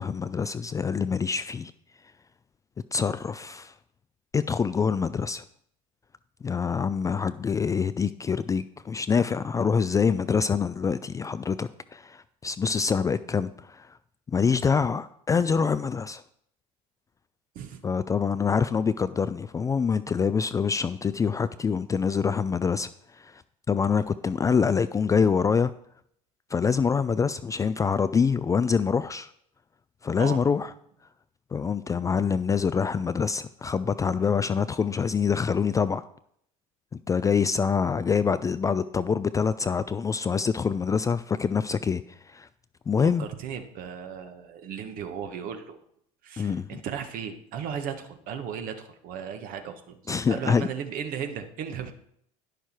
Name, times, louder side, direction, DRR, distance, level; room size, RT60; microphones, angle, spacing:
voice 1, 0.0-1.7 2.9-3.7 4.3-5.4 6.4-14.0 14.3-16.2 17.8-23.4 23.7-25.7 26.5-29.3 30.0-30.7 31.5-36.0 37.1-42.5 42.9-43.3 46.4-46.8 50.1-50.7, left 6 dB, 20° left, 0.3 m, -25 dB
voice 2, 43.0-45.8 46.2-50.0 50.3-51.9, right 7 dB, 55° right, 1.3 m, -36 dB
10.0 x 6.5 x 4.5 m
hypercardioid pair, 75°, 18 cm